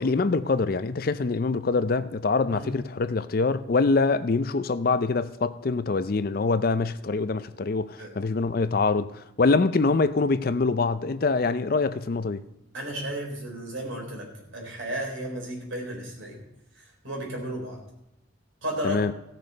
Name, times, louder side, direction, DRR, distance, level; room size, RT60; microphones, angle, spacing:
voice 1, 0.0-12.4 18.8-19.1, left 3 dB, 45° left, 0.4 m, -24 dB
voice 2, 12.7-14.3 14.5-16.4 17.0-17.8 18.6-19.0, right 1 dB, 75° right, 3.9 m, -33 dB
16.0 x 6.7 x 5.4 m
head